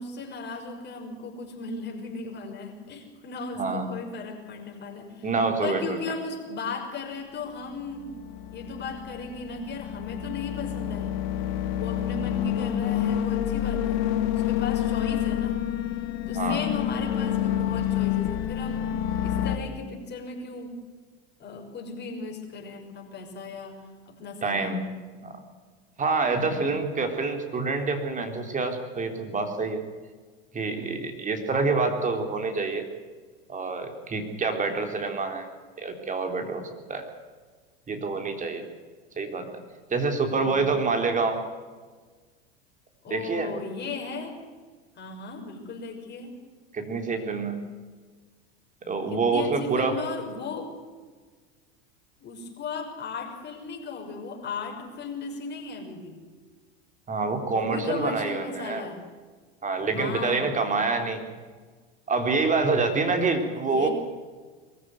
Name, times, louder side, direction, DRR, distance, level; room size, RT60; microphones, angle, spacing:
voice 1, 0.0-5.3 5.6-8.1 8.5-11.2 11.7-14.1 14.5-15.6 16.3-18.9 19.2-20.7 21.4-23.8 24.1-24.7 26.3-26.8 40.3-40.6 43.0-44.3 45.0-46.3 49.1-50.7 52.2-56.2 57.5-59.0 59.9-60.5 62.9-63.9, left 4 dB, 35° left, 1 dB, 6.2 m, -36 dB
voice 2, 3.6-3.9 5.2-6.0 16.4-16.6 24.4-24.8 25.2-25.4 26.0-29.8 30.5-32.9 33.5-35.5 35.8-37.0 37.9-38.6 39.2-39.5 39.9-41.4 43.1-43.5 46.7-47.6 48.9-50.0 57.1-58.9 59.6-61.3 62.1-63.9, right 4 dB, 25° right, 5 dB, 3.7 m, -27 dB
sound 1, 7.7-19.6, left 11 dB, 60° left, 2.3 m, -28 dB
22.5 x 15.0 x 9.5 m, 1.5 s
hypercardioid pair, 105°, 31 cm